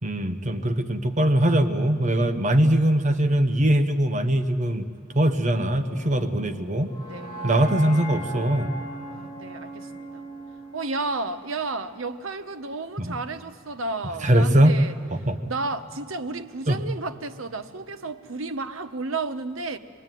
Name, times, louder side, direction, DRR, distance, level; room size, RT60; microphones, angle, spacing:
voice 1, 0.0-4.9 5.1-6.9 7.4-8.7 13.0-13.2 14.2-14.7 15.3-15.4 16.7-16.8, right 1 dB, 35° right, 8 dB, 1.1 m, -21 dB
sound 1, 5.7-11.8, right 1 dB, 25° left, 6.8 m, -38 dB
voice 2, 9.1-10.2 10.7-14.9 15.5-19.8, right 3 dB, 85° right, 9 dB, 1.2 m, -32 dB
26.0 x 20.0 x 9.2 m, 2.1 s
head